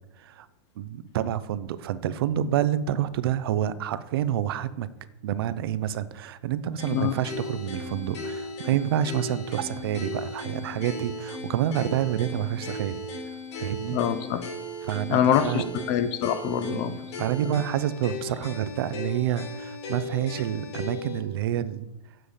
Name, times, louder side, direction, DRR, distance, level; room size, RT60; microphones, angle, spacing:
voice 1, 0.8-4.9 5.2-13.0 13.6-14.0 14.8-15.7 16.7-21.9, right 11 dB, 55° right, 14 dB, 0.5 m, -28 dB
sound 1, 6.8-21.2, left 2 dB, 70° left, 3.0 m, -37 dB
voice 2, 13.9-14.5 15.1-17.0, left 9 dB, 30° left, 12 dB, 0.5 m, -25 dB
8.0 x 7.7 x 5.1 m, 0.91 s
supercardioid pair, 165°, 15 cm